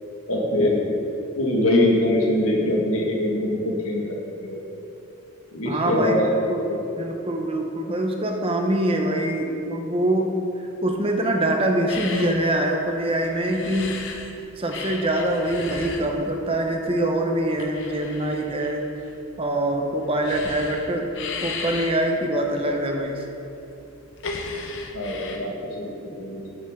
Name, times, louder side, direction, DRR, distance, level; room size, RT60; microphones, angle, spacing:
voice 1, 0.3-0.8 1.3-4.6 5.5-6.3 6.7-6.8 24.9-26.5, left 1 dB, 85° left, -2 dB, 1.9 m, -23 dB
voice 2, 5.7-6.6 7.0-10.3 10.8-14.0 14.6-18.8 19.4-21.1 21.4-23.2, right 1 dB, 25° right, 2 dB, 0.8 m, -24 dB
sound 1, 11.9-14.3 14.7-25.4, left 4 dB, 60° left, 0.9 m, -35 dB
12.5 x 7.3 x 3.7 m, 2.9 s
head